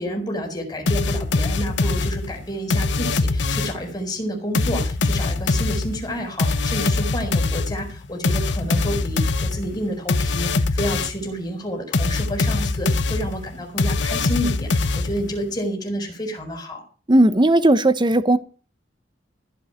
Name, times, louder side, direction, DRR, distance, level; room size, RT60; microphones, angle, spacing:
voice 1, 0.0-16.8, equal, 25° left, 4.4 m, -29 dB
sound 1, 0.9-3.9 4.5-11.3 11.9-15.4, left 3 dB, 75° left, 1.0 m, -23 dB
voice 2, 17.1-18.4, right 1 dB, 25° right, 0.8 m, -16 dB
15.0 x 5.4 x 8.9 m
head